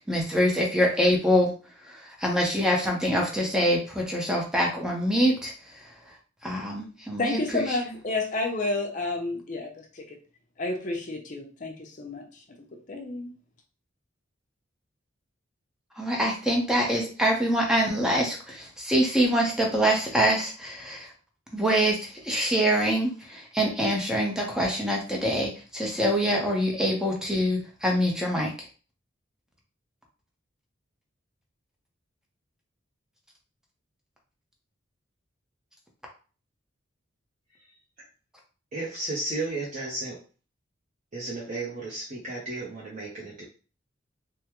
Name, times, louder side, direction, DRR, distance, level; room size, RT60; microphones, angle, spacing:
voice 1, 0.0-1.5 1.9-5.5 6.4-7.6 16.0-21.1 21.5-28.5, equal, 5° right, -1 dB, 0.7 m, -25 dB
voice 2, 7.2-10.2 10.6-13.3, left 2 dB, 40° left, 1 dB, 0.7 m, -31 dB
voice 3, 38.7-40.2 41.1-43.4, right 2 dB, 40° right, -6 dB, 0.7 m, -33 dB
3.5 x 2.2 x 2.9 m, 0.37 s
head